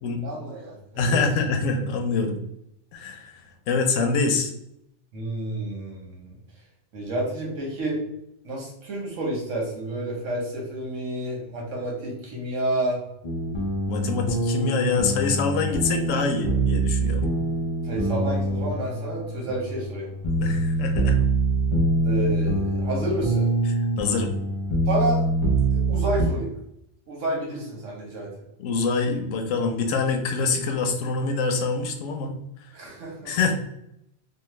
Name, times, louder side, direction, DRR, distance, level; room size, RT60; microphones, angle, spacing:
voice 1, 0.2-1.2 5.1-6.4 6.9-8.0 8.4-13.0 17.8-20.1 22.0-23.5 24.9-25.2 25.9-26.5 27.1-28.3 32.7-33.3, right 1 dB, 80° right, -2 dB, 1.4 m, -30 dB
voice 2, 1.0-2.4 2.9-3.4 3.7-4.5 13.9-17.2 20.4-21.2 23.7-24.3 28.6-32.3 33.2-33.5, left 4 dB, 90° left, 5 dB, 1.0 m, -25 dB
sound 1, 13.2-26.3, right 2 dB, 45° left, 0.3 m, -24 dB
3.2 x 2.1 x 3.1 m, 0.78 s
omnidirectional pair, 1.3 m